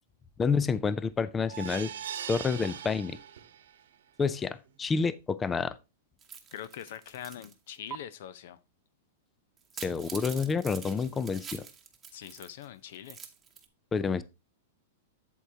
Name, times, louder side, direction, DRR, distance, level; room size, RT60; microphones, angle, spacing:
voice 1, 0.4-1.9 2.3-3.2 4.2-5.8 9.8-11.7 13.9-14.2, left 5 dB, 15° left, 0.4 m, -29 dB
sound 1, 1.5-3.8 4.2-4.3 4.7-4.8, right 9 dB, 80° right, 1.2 m, -40 dB
sound 2, 6.2-7.5 7.9-8.0 9.6-12.7 12.9-13.7, right 7 dB, 15° right, 1.0 m, -45 dB
voice 2, 6.5-8.6 12.1-13.2, left 10 dB, 60° left, 0.7 m, -43 dB
8.1 x 7.7 x 2.8 m
supercardioid pair, 155°, 0 cm